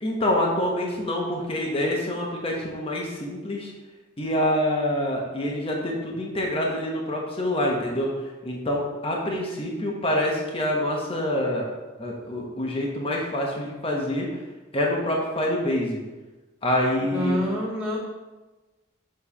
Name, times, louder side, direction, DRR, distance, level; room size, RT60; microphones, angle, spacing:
voice 1, 0.0-3.7 4.2-11.7 12.0-14.3 14.7-16.0 16.6-17.4, left 1 dB, 30° left, -1 dB, 1.0 m, -26 dB
voice 2, 17.0-18.0, left 1 dB, 5° right, -9 dB, 2.1 m, -27 dB
7.0 x 3.3 x 4.2 m, 1.1 s
head